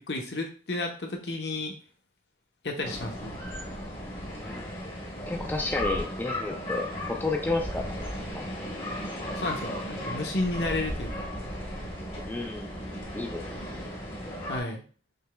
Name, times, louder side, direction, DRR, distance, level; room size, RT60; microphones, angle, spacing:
voice 1, 0.0-1.7 2.6-3.4 9.4-11.3 14.5-14.8, left 2 dB, 70° left, 2 dB, 0.9 m, -32 dB
sound 1, 2.8-14.6, equal, 30° left, 1.1 m, -36 dB
voice 2, 4.3-4.7 5.3-8.0 8.3-8.5 9.3-9.4 12.3-12.7 13.1-13.4, left 2 dB, 10° left, 3 dB, 0.4 m, -31 dB
sound 2, 7.4-13.8, right 1 dB, 45° right, 0.7 m, -48 dB
5.4 x 3.3 x 2.3 m, 0.38 s
head